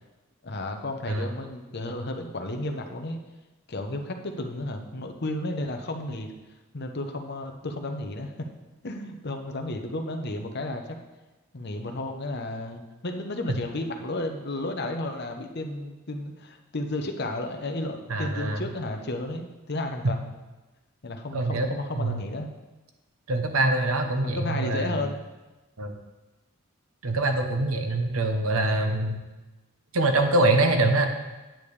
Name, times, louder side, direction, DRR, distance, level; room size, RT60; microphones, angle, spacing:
voice 1, 0.4-3.2 3.7-6.3 6.7-8.5 8.8-10.8 11.5-20.3 21.0-22.5 24.2-25.2, left 2 dB, 50° left, 4 dB, 0.9 m, -33 dB
voice 2, 18.1-18.6 21.3-21.7 22.0-22.2 23.3-25.1 25.8-26.0 27.0-29.2 29.9-31.1, right 2 dB, 80° right, 5 dB, 0.9 m, -24 dB
9.0 x 8.5 x 3.3 m, 1.1 s
head